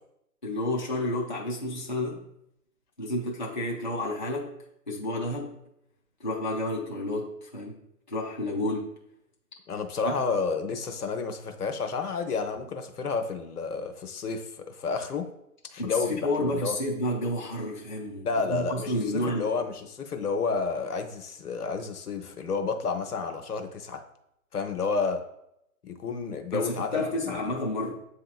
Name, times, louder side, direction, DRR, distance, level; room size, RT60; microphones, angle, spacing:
voice 1, 0.4-2.2 3.0-4.5 4.9-5.6 6.2-7.8 8.1-8.9 10.0-10.2 15.8-19.5 26.5-28.0, left 1 dB, 35° left, -4 dB, 0.4 m, -30 dB
voice 2, 9.7-15.3 15.7-16.8 18.2-24.0 24.5-25.2 25.8-27.4, left 4 dB, 75° left, 6 dB, 0.8 m, -30 dB
7.9 x 2.8 x 2.3 m, 0.79 s
hypercardioid pair, 155°, 46 cm